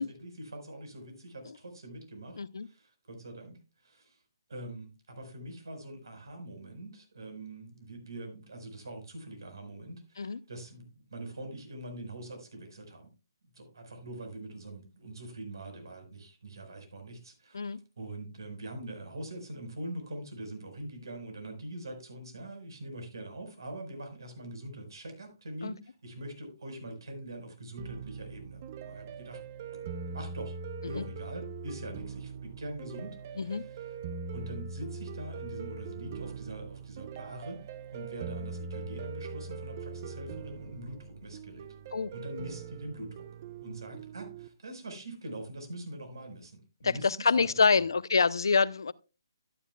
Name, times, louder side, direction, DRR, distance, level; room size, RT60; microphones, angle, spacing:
voice 1, 0.0-4.2 4.5-13.1 13.5-29.4 29.7-29.8 30.1-30.6 30.8-34.0 34.3-37.6 37.9-41.7 42.1-43.3 43.6-47.1 47.4-47.9, right 1 dB, 70° right, 4.6 m, -43 dB
voice 2, 2.4-2.7 10.2-10.4 17.5-17.8 25.6-25.7 31.0-31.1 33.4-33.7 41.9-42.1 46.8-48.9, left 5 dB, 70° left, 0.5 m, -26 dB
sound 1, 27.8-44.5, right 5 dB, 40° right, 0.7 m, -41 dB
12.5 x 9.9 x 2.3 m
figure-of-eight pair, 140°, 2 cm